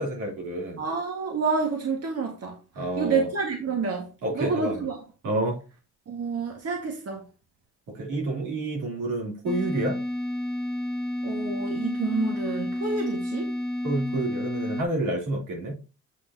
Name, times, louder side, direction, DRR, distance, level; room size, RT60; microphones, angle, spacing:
voice 1, 0.0-0.8 2.7-3.3 4.2-4.8 5.2-5.6 7.9-10.0 13.8-15.7, right 2 dB, 85° right, 3.3 m, -29 dB
voice 2, 0.8-5.0 6.1-7.3 11.2-13.5, right 4 dB, 55° right, 1.8 m, -29 dB
sound 1, 9.5-14.8, left 1 dB, ahead, 1.0 m, -30 dB
8.2 x 6.2 x 2.8 m
cardioid pair, 90°, 30 cm